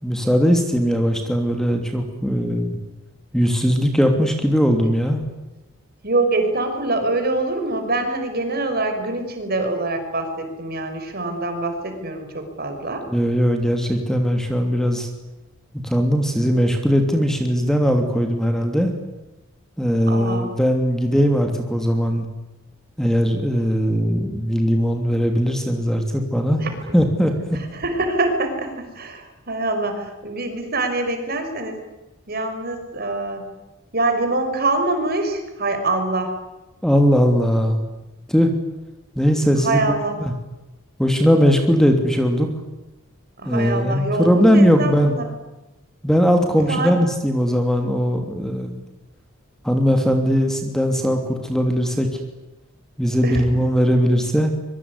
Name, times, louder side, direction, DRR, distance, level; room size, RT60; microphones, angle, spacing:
voice 1, 0.0-2.8 3.3-5.2 13.1-15.1 15.8-18.9 19.8-22.3 23.0-26.6 26.9-27.6 36.8-37.9 38.3-38.5 39.1-39.9 41.0-42.5 43.4-45.1 46.0-48.7 49.6-52.2 53.0-54.5, equal, ahead, 4 dB, 2.9 m, -19 dB
voice 2, 6.0-13.0 20.1-20.5 26.6-26.9 27.5-31.8 32.3-33.5 33.9-36.3 39.6-40.2 43.4-45.3 46.7-46.9 53.2-53.5, right 2 dB, 50° right, 6 dB, 5.9 m, -24 dB
25.0 x 23.5 x 9.8 m, 1.0 s
head